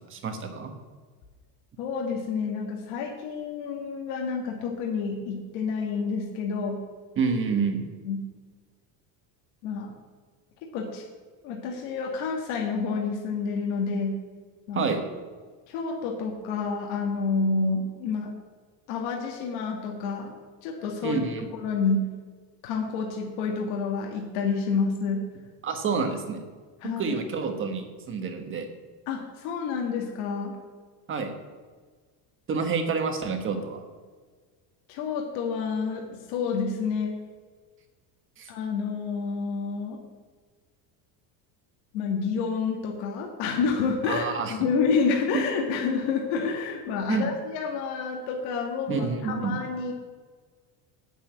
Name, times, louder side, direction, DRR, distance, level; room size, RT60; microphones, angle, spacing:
voice 1, 0.1-0.7 7.2-7.8 14.7-15.0 21.0-21.4 25.6-26.4 26.8-28.7 31.1-31.3 32.5-33.9 38.4-38.5 44.1-44.5 47.1-47.2 48.9-49.5, right 5 dB, 25° right, 6 dB, 1.3 m, -28 dB
voice 2, 1.8-6.8 8.1-8.2 9.6-9.9 10.7-11.0 11.4-14.2 14.7-14.9 15.7-18.3 18.9-20.3 20.6-21.2 21.5-22.0 22.6-25.2 26.8-27.2 29.1-30.5 34.9-37.2 38.5-40.0 41.9-49.9, left 5 dB, 75° left, 0 dB, 1.9 m, -29 dB
9.0 x 7.1 x 8.6 m, 1.5 s
cardioid pair, 170°, 46 cm